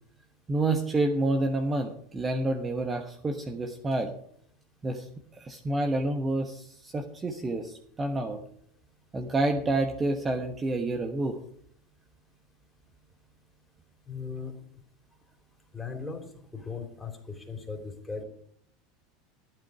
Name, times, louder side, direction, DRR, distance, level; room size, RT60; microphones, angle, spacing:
voice 1, 0.5-4.1 4.8-5.1 5.3-8.4 9.1-11.4, right 2 dB, 20° right, 4 dB, 1.2 m, -28 dB
voice 2, 14.1-14.5 15.7-16.2 16.5-18.2, left 5 dB, 10° left, 3 dB, 3.1 m, -37 dB
11.5 x 11.0 x 4.9 m, 0.66 s
figure-of-eight pair, 75°, 0 cm